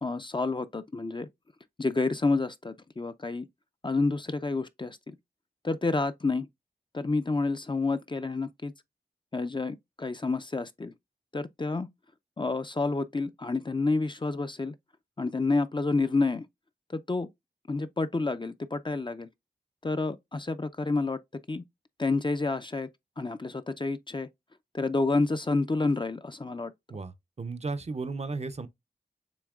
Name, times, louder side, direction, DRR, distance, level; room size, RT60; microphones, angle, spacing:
voice 1, 0.0-1.3 1.8-3.5 3.8-5.1 5.6-6.5 6.9-8.7 9.3-10.9 11.3-11.9 12.4-14.7 15.2-16.5 16.9-17.3 17.7-19.3 19.8-21.2 21.5-21.6 22.0-22.9 23.2-24.3 24.7-26.7, left 3 dB, 30° left, 0.5 m, -29 dB
voice 2, 26.9-28.7, right 3 dB, 40° right, 0.5 m, -35 dB
7.1 x 2.8 x 2.3 m
cardioid pair, 45°, 17 cm